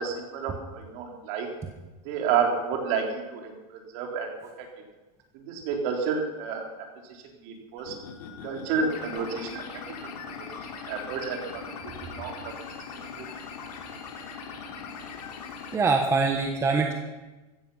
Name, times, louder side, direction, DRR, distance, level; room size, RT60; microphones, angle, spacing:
voice 1, 0.0-1.5 2.0-3.5 3.9-4.3 4.6-4.7 5.3-6.7 7.1-7.9 8.4-9.6 10.0-10.5 10.8-11.6 12.2-12.5 13.1-13.3, right 6 dB, 45° right, 2 dB, 3.9 m, -30 dB
sound 1, 7.8-15.8, left 6 dB, 80° left, 3.7 m, -40 dB
voice 2, 15.7-16.9, right 4 dB, 15° right, 3 dB, 1.3 m, -23 dB
16.0 x 15.0 x 5.7 m, 1.2 s
supercardioid pair, 155°, 20 cm